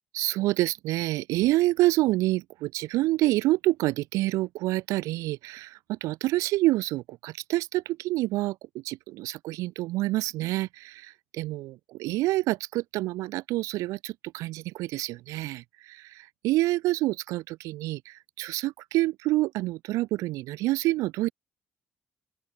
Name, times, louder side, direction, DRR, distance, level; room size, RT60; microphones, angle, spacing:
voice 1, 0.1-21.3, right 18 dB, 65° right, 0.7 m, -27 dB
open air
figure-of-eight pair, 45°, 6 cm